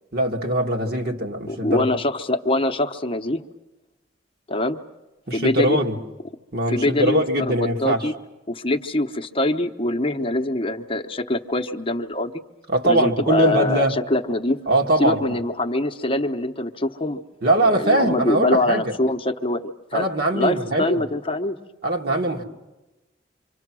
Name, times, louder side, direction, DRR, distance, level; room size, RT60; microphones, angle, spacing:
voice 1, 0.1-1.9 5.3-6.0 6.5-8.1 12.7-14.0 14.7-15.2 17.4-18.9 19.9-21.0 21.8-22.4, right 1 dB, 55° right, 2.1 m, -21 dB
voice 2, 1.5-3.4 4.5-4.8 5.3-5.8 6.7-8.1 8.5-12.3 12.8-14.6 15.0-17.2 17.6-20.0 20.3-21.6, left 2 dB, 30° left, 0.9 m, -24 dB
26.5 x 25.5 x 6.2 m
head